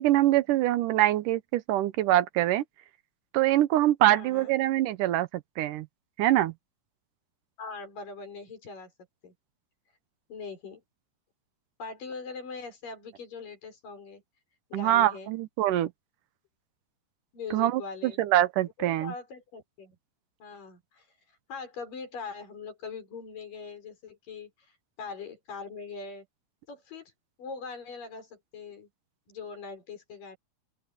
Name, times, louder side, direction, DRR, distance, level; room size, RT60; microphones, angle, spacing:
voice 1, 0.0-2.6 3.3-5.3 5.6-5.9 6.2-6.5 14.7-15.9 17.5-19.1, right 14 dB, 80° right, 2.4 m, -24 dB
voice 2, 4.1-4.5 7.6-8.9 9.2-9.3 10.3-10.8 11.8-14.2 14.7-15.3 17.3-18.2 18.8-20.0 20.4-21.1 21.5-24.5 25.0-26.3 26.7-27.1 27.4-28.9 29.3-30.4, left 4 dB, 85° left, 7.4 m, -41 dB
open air
omnidirectional pair, 3.8 m